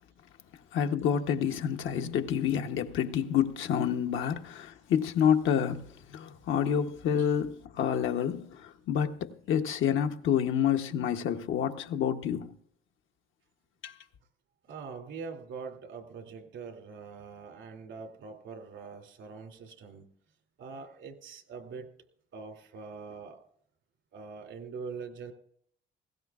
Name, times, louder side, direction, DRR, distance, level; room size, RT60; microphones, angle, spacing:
voice 1, 0.7-12.5 13.8-13.9, left 8 dB, 80° left, 1.0 m, -28 dB
voice 2, 14.6-20.1 20.6-21.9 22.3-23.4 24.1-25.3, right 5 dB, 80° right, 2.7 m, -43 dB
19.5 x 17.0 x 2.4 m
cardioid pair, 90°, 20 cm